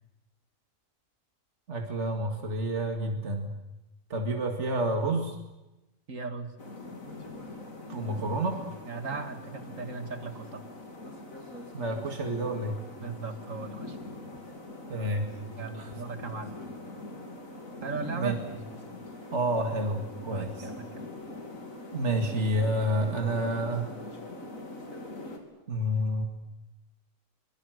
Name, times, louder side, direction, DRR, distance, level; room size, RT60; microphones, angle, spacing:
voice 1, 1.7-3.5 4.1-5.4 7.9-8.6 11.7-12.8 14.9-15.3 15.8-15.9 18.2-18.3 19.3-20.7 21.9-23.9 25.7-26.2, right 1 dB, 60° right, 3 dB, 2.6 m, -29 dB
voice 2, 6.1-6.5 8.8-10.6 13.0-14.0 15.6-16.5 17.8-18.4 20.3-21.0, right 4 dB, 75° right, 7 dB, 2.5 m, -37 dB
sound 1, 6.6-25.4, left 2 dB, 85° left, 4.0 m, -43 dB
24.5 x 23.0 x 8.0 m, 0.97 s
omnidirectional pair, 1.4 m